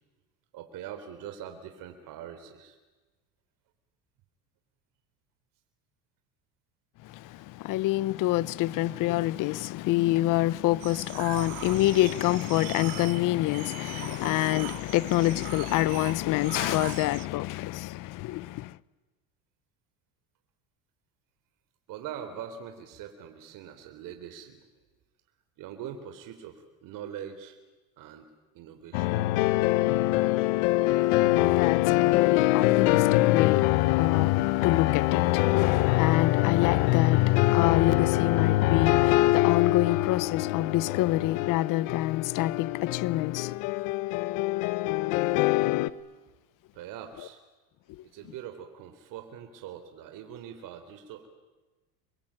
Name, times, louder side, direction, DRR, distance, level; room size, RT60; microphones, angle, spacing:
voice 1, 0.5-2.8 21.9-24.6 25.6-27.6 28.0-28.3 28.5-29.1 45.2-45.4 46.7-47.4 48.1-51.3, right 9 dB, 60° right, 3.9 m, -42 dB
voice 2, 7.0-18.8 31.1-43.5, left 16 dB, 60° left, 1.0 m, -27 dB
sound 1, 10.8-17.3, right 19 dB, 85° right, 1.3 m, -41 dB
sound 2, 28.9-45.9, left 18 dB, 80° left, 1.3 m, -24 dB
28.0 x 23.0 x 8.9 m
supercardioid pair, 115°, 36 cm